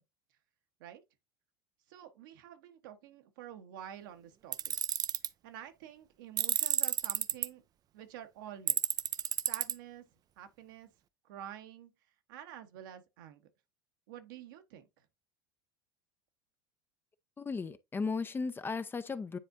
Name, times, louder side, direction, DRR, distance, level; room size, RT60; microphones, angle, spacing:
voice 1, 1.9-4.7 5.4-7.6 7.9-8.8 9.4-10.1 10.4-10.9 11.2-11.9 12.3-13.5 14.1-15.1, right 10 dB, 65° right, 1.2 m, -49 dB
Tools, 4.5-5.3 6.4-7.5 8.7-9.7, right 10 dB, 35° right, 0.5 m, -30 dB
voice 2, 17.4-19.4, left 4 dB, 20° left, 0.6 m, -35 dB
9.8 x 4.3 x 2.6 m
figure-of-eight pair, 75°, 12 cm